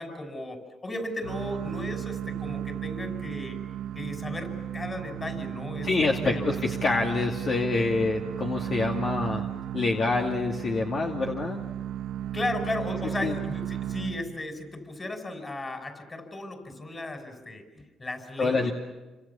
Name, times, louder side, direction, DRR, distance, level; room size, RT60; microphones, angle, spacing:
voice 1, 0.0-3.6 3.9-6.6 12.3-18.7, left 2 dB, 25° left, 6 dB, 5.7 m, -35 dB
sound 1, 1.2-14.6, right 10 dB, 85° right, 1.1 m, -34 dB
voice 2, 5.8-9.4 9.7-11.6 13.2-13.4 18.4-18.7, left 3 dB, 50° left, 0 dB, 2.4 m, -26 dB
27.5 x 26.0 x 7.1 m, 1.1 s
cardioid pair, 90°, 0 cm